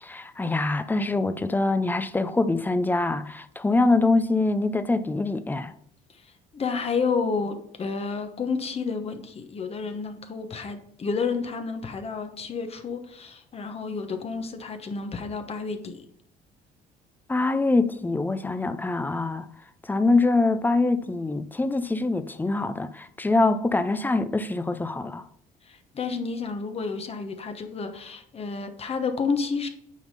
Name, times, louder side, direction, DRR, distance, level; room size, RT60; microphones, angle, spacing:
voice 1, 0.0-5.7 17.3-19.5 19.9-25.2, left 2 dB, 10° left, 0.5 m, -24 dB
voice 2, 6.1-16.0 25.6-29.7, left 5 dB, 35° left, 1.1 m, -30 dB
9.3 x 3.6 x 5.6 m
cardioid pair, 110°, 17 cm